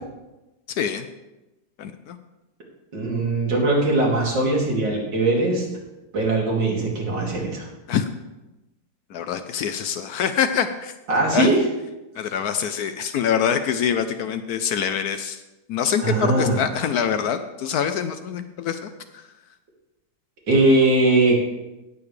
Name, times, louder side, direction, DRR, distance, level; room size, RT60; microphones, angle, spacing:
voice 1, 0.8-1.1 1.8-2.2 7.9-8.1 9.1-10.9 11.3-11.5 12.2-15.4 15.7-19.2, left 8 dB, 70° left, 10 dB, 1.0 m, -25 dB
voice 2, 2.9-5.7 6.1-7.7 11.1-11.6 16.0-16.6 20.5-21.4, right 2 dB, 80° right, -3 dB, 3.1 m, -20 dB
18.0 x 7.0 x 3.2 m, 1.0 s
omnidirectional pair, 1.9 m